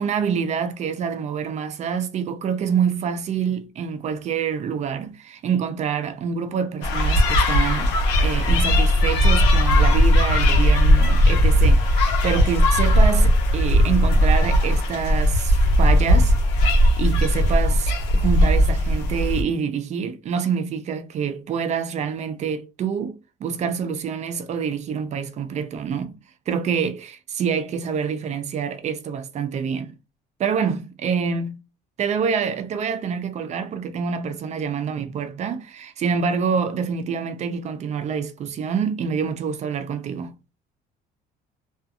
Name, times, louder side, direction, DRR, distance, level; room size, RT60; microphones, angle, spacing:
voice 1, 0.0-16.3 17.0-26.2 26.5-30.0 30.4-31.6 32.0-40.3, right 6 dB, 40° right, 0.4 m, -26 dB
sound 1, 6.8-19.4, equal, 90° left, 0.9 m, -18 dB
2.4 x 2.4 x 2.7 m
cardioid pair, 120°, 18 cm